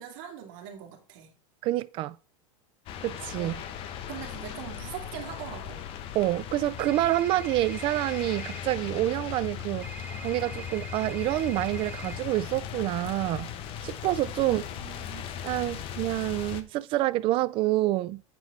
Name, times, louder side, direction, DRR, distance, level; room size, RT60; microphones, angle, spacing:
voice 1, 0.0-1.3 3.4-3.6 4.1-5.8 14.4-15.3, right 9 dB, 50° right, 2.2 m, -42 dB
voice 2, 1.6-2.1 3.0-3.6 6.1-9.9 10.2-13.5 13.8-14.6 15.4-18.2, right 16 dB, 30° right, 0.4 m, -27 dB
sound 1, 2.9-16.6, left 9 dB, 35° left, 0.7 m, -38 dB
sound 2, 6.8-8.6 9.8-12.2, right 3 dB, 10° right, 0.9 m, -44 dB
8.4 x 4.6 x 4.0 m
supercardioid pair, 145°, 16 cm